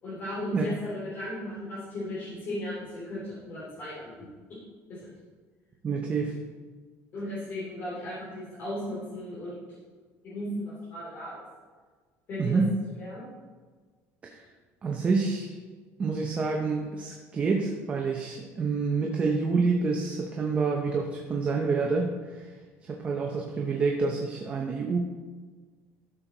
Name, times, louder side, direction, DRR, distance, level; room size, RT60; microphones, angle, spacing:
voice 1, 0.0-4.1 4.5-4.6 4.9-5.0 7.1-9.8 10.2-11.4 12.3-12.6 13.0-13.2, left 1 dB, 35° left, -9 dB, 3.1 m, -36 dB
voice 2, 5.8-6.4 12.4-12.7 14.2-14.4 14.8-15.6 16.0-22.5 22.8-25.0, right 4 dB, 25° right, 1 dB, 0.8 m, -28 dB
12.5 x 6.4 x 4.0 m, 1.4 s
cardioid pair, 165°, 6 cm